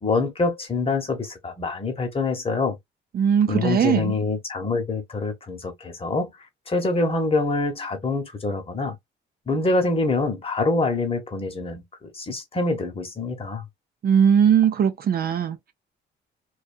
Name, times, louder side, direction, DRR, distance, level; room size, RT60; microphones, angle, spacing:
voice 1, 0.0-2.8 3.5-6.3 6.7-9.0 9.5-13.6, left 3 dB, 30° left, 1.0 m, -25 dB
voice 2, 3.1-4.1 14.0-15.7, right 8 dB, 50° right, 0.5 m, -19 dB
2.5 x 2.4 x 2.5 m
cardioid pair, 90°, 20 cm